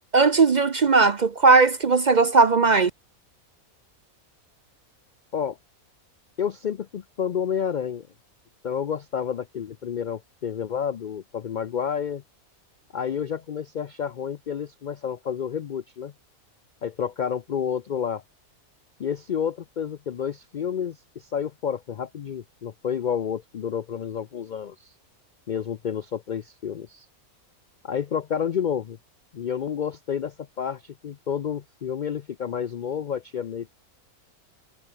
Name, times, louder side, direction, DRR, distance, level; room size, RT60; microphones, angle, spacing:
voice 1, 0.1-2.9, right 4 dB, 45° right, 0.6 m, -18 dB
voice 2, 6.4-8.1 8.6-12.2 12.9-16.1 16.8-18.2 19.0-24.9 25.5-27.1 27.8-29.0 29.3-33.7, left 8 dB, 75° left, 0.4 m, -30 dB
omnidirectional pair, 1.5 m